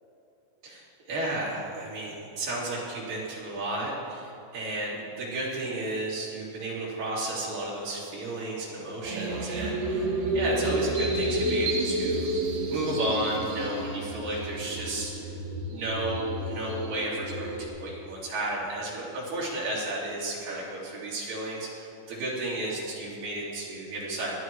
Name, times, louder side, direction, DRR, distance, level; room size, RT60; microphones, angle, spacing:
voice 1, 0.6-12.3 12.7-15.3 15.7-24.3, right 2 dB, 45° right, -8 dB, 4.5 m, -33 dB
sound 1, 9.0-17.7, right 1 dB, 65° right, 4.0 m, -30 dB
22.0 x 13.0 x 3.1 m, 2.8 s
omnidirectional pair, 5.6 m